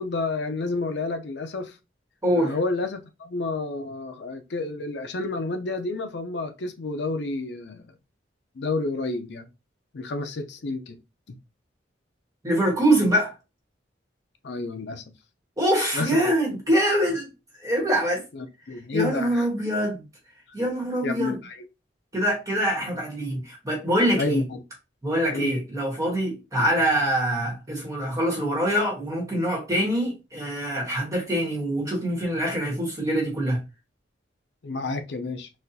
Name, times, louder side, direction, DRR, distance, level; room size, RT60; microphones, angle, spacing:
voice 1, 0.0-1.7 2.4-7.9 8.6-9.5 9.9-11.0 14.4-15.0 15.9-16.1 18.3-19.5 21.0-21.6 24.2-24.6 25.3-25.6 34.6-35.5, left 3 dB, 60° left, 0.5 m, -30 dB
voice 2, 2.2-2.5 12.4-13.3 15.6-17.3 17.6-18.2 18.9-20.0 20.5-21.4 22.1-24.4 25.0-33.6, right 1 dB, 20° right, 1.3 m, -24 dB
4.1 x 2.4 x 2.6 m
head